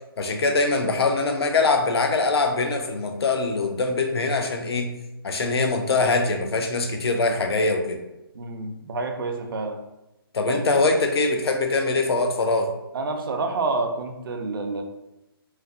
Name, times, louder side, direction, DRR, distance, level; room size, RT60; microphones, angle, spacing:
voice 1, 0.2-4.9 5.2-8.0 10.3-12.7, left 3 dB, 85° left, 5 dB, 0.5 m, -23 dB
voice 2, 8.3-9.8 10.5-10.6 12.9-14.8, right 3 dB, 60° right, 4 dB, 0.5 m, -28 dB
3.1 x 2.0 x 2.4 m, 0.92 s
hypercardioid pair, 160°, 13 cm